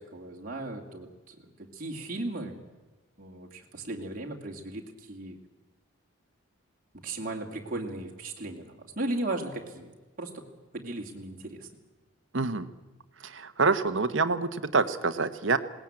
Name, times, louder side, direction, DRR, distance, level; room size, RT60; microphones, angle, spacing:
voice 1, 0.0-2.6 3.2-5.3 7.0-9.9 10.2-10.4 10.7-11.7, right 2 dB, 40° right, 0 dB, 2.5 m, -36 dB
voice 2, 12.3-12.7 13.2-15.6, right 4 dB, 60° right, 10 dB, 1.1 m, -26 dB
20.5 x 18.5 x 8.8 m, 1.2 s
head